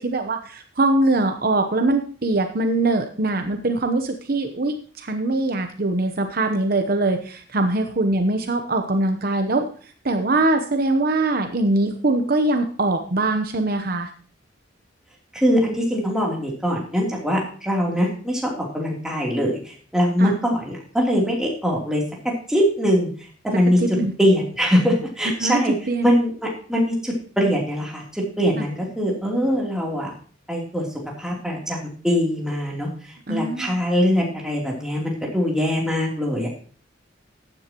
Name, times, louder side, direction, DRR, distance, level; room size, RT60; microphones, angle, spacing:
voice 1, 0.0-9.7 10.0-14.1 20.2-20.3 23.8-24.1 25.4-25.6 25.9-26.1 28.6-28.7 33.3-33.7, right 2 dB, 50° right, 6 dB, 0.9 m, -22 dB
voice 2, 15.3-22.0 22.5-23.1 23.4-23.8 24.2-25.7 26.0-26.3 26.7-30.1 30.5-30.8 31.2-31.8 32.0-36.5, equal, 5° right, -3 dB, 3.2 m, -22 dB
14.5 x 9.8 x 3.0 m, 0.43 s
head